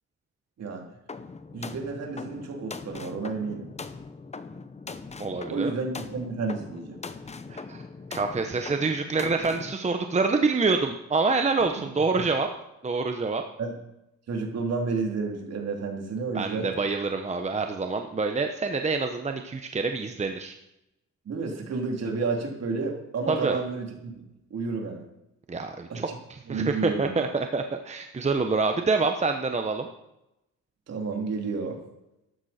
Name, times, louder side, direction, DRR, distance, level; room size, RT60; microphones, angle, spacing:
voice 1, 0.6-0.9 1.5-3.7 5.5-7.0 12.1-12.2 13.6-13.7 14.3-16.7 21.2-23.9 24.5-25.0 25.9-26.1 26.5-27.2 30.9-31.8, right 4 dB, 55° right, 1 dB, 3.2 m, -31 dB
sound 1, 1.1-9.7, left 4 dB, 20° left, 0.8 m, -41 dB
voice 2, 5.2-5.7 7.5-7.8 8.1-12.5 12.8-13.4 16.3-20.5 23.3-23.6 25.5-29.9, right 4 dB, 20° right, 5 dB, 1.0 m, -26 dB
13.0 x 11.5 x 4.3 m, 0.88 s
cardioid pair, 90°, 30 cm